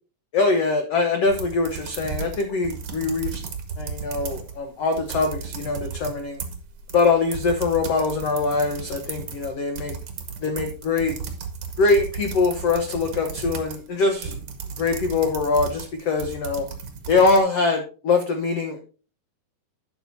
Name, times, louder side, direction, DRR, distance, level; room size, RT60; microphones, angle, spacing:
voice 1, 0.3-3.4 3.8-6.4 6.9-9.9 10.4-11.1 11.8-14.3 14.8-16.7 17.1-18.8, left 3 dB, 90° left, 4 dB, 1.3 m, -23 dB
sound 1, 1.2-4.6 4.9-17.4, right 6 dB, 50° right, 2.0 m, -35 dB
11.5 x 8.9 x 2.7 m, 0.35 s
omnidirectional pair, 4.5 m